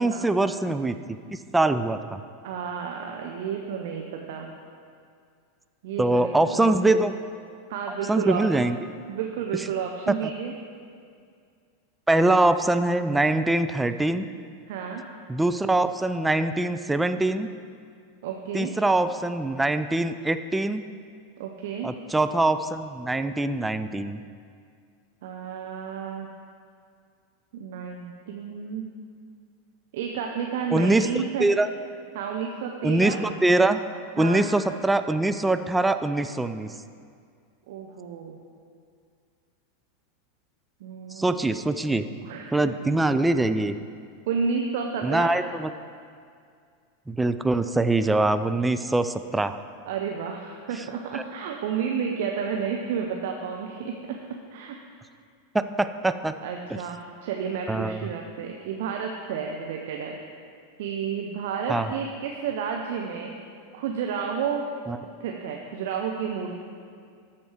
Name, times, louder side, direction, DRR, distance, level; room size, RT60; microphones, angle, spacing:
voice 1, 0.0-2.2 6.0-7.1 8.1-8.8 10.2-10.3 12.1-14.2 15.3-17.5 18.5-20.8 21.8-24.2 30.7-31.1 31.4-31.7 32.8-33.8 34.2-36.7 41.1-42.1 42.5-43.8 45.0-45.7 47.1-49.6 51.1-51.2 55.5-56.3 56.7-56.8 57.7-58.1 61.7-62.0 64.9-65.0, right 2 dB, 10° right, 10 dB, 0.3 m, -23 dB
voice 2, 2.4-4.5 5.8-7.0 7.7-8.4 9.1-10.5 14.7-15.0 18.2-18.7 21.4-21.9 25.2-26.3 27.5-28.8 29.9-31.5 32.1-33.2 34.2-34.5 37.7-38.4 40.8-41.4 42.2-42.7 44.3-45.3 49.9-54.2 54.5-54.8 55.6-55.7 56.4-60.2 60.8-63.3 63.7-64.7 65.2-66.6, right 7 dB, 55° right, 2 dB, 0.6 m, -31 dB
13.0 x 4.4 x 4.8 m, 2.3 s
figure-of-eight pair, 85°, 0 cm